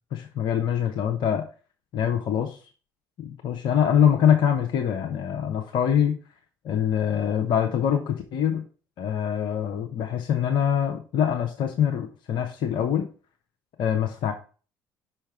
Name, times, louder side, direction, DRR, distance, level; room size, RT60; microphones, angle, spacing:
voice 1, 0.1-1.4 1.9-2.6 3.2-6.2 6.6-8.6 9.0-13.1 13.8-14.3, left 9 dB, 55° left, 4 dB, 0.7 m, -24 dB
5.6 x 4.4 x 4.8 m, 0.37 s
figure-of-eight pair, 50°, 10 cm